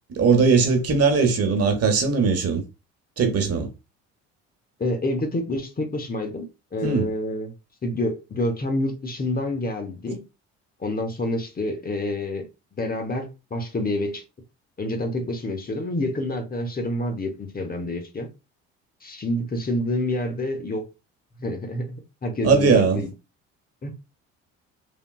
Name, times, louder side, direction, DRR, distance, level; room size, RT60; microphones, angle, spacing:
voice 1, 0.1-2.6 3.2-3.7 6.8-7.1 22.4-23.0, right 5 dB, 50° right, 1.1 m, -19 dB
voice 2, 4.8-6.5 6.7-7.5 7.8-10.2 10.8-12.4 12.8-14.2 14.8-18.3 19.0-20.8 21.4-21.9 22.2-23.1 23.8-23.9, left 1 dB, 30° left, 1.0 m, -27 dB
3.3 x 2.7 x 2.3 m
supercardioid pair, 70°, 31 cm